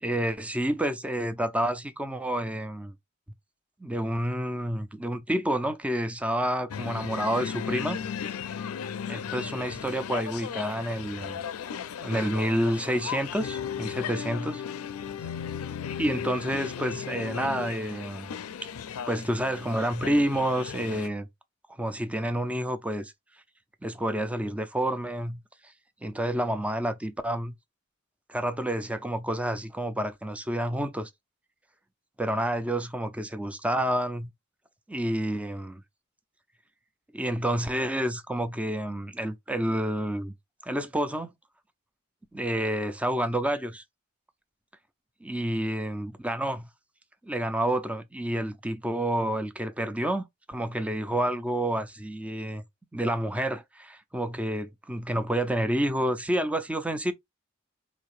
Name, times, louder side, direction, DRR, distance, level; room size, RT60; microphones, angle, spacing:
voice 1, 0.0-2.9 3.8-8.0 9.0-11.4 12.0-14.6 16.0-18.3 19.1-21.3 21.8-23.1 23.8-25.7 26.0-27.5 28.3-31.1 32.2-34.3 34.9-35.8 37.1-40.3 40.6-41.3 42.3-43.8 45.2-46.7 47.2-52.6 52.9-57.1, right 1 dB, 5° right, 0.4 m, -29 dB
sound 1, 6.7-21.1, left 7 dB, 85° left, 0.4 m, -36 dB
4.0 x 2.7 x 3.1 m
head